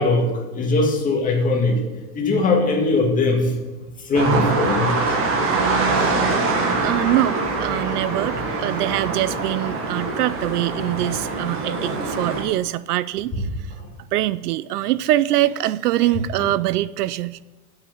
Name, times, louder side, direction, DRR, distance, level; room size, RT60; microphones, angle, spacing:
voice 1, 0.0-1.8 2.1-3.5 4.0-5.2 5.9-6.1 7.1-7.2 13.3-13.4 13.8-13.9 16.4-16.5, left 2 dB, 15° left, 0 dB, 2.1 m, -21 dB
sound 1, 4.1-12.4, right 3 dB, 30° right, 1.7 m, -23 dB
voice 2, 6.8-13.5 14.1-17.4, right 15 dB, 80° right, 18 dB, 0.6 m, -23 dB
11.0 x 8.9 x 5.4 m, 1.2 s
supercardioid pair, 150°, 46 cm